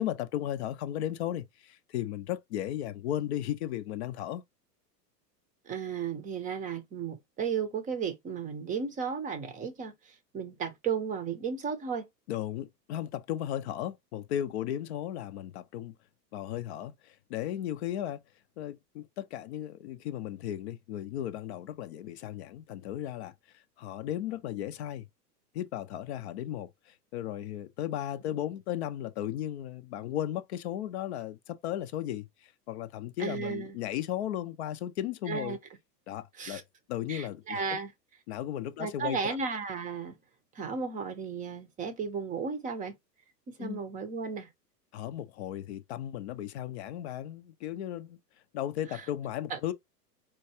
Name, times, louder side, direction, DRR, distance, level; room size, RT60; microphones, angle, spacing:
voice 1, 0.0-4.4 12.3-15.9 16.3-18.2 18.6-23.3 23.8-25.1 25.5-35.6 36.1-36.6 36.9-37.8 38.3-39.4 43.6-43.8 44.9-48.2 48.5-49.7, left 11 dB, 45° left, 0.5 m, -35 dB
voice 2, 5.7-12.0 33.2-33.8 35.3-35.6 36.4-36.6 37.1-37.9 38.8-40.2 40.5-42.9 43.5-44.5 49.5-49.6, right 6 dB, 15° right, 0.6 m, -34 dB
4.5 x 2.2 x 2.7 m
hypercardioid pair, 105°, 50 cm